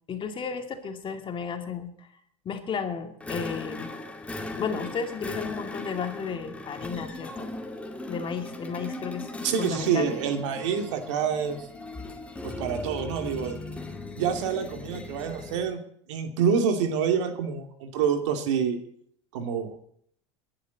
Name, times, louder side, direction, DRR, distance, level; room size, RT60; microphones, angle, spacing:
voice 1, 0.1-2.1 2.4-3.9 4.6-7.5 8.1-10.1, left 6 dB, 35° left, 6 dB, 2.3 m, -33 dB
sound 1, 3.2-15.7, left 2 dB, 10° left, 2.3 m, -38 dB
voice 2, 9.4-11.7 12.4-13.6 14.2-15.8 16.1-18.8 19.3-19.7, right 7 dB, 80° right, 6 dB, 2.5 m, -27 dB
20.5 x 11.0 x 4.0 m, 0.65 s
supercardioid pair, 105°, 15 cm